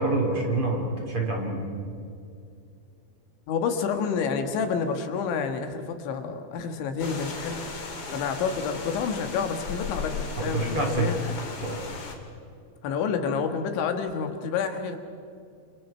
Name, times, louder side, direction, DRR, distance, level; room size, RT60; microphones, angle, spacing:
voice 1, 0.0-1.6 10.4-11.1 11.6-11.8, right 2 dB, 30° right, -1 dB, 4.3 m, -26 dB
voice 2, 3.5-7.6 8.1-11.4 12.8-15.0, left 6 dB, 80° left, 6 dB, 4.0 m, -29 dB
sound 1, 7.0-12.1, left 4 dB, 40° left, 2.7 m, -36 dB
28.0 x 28.0 x 4.6 m, 2.5 s
omnidirectional pair, 5.2 m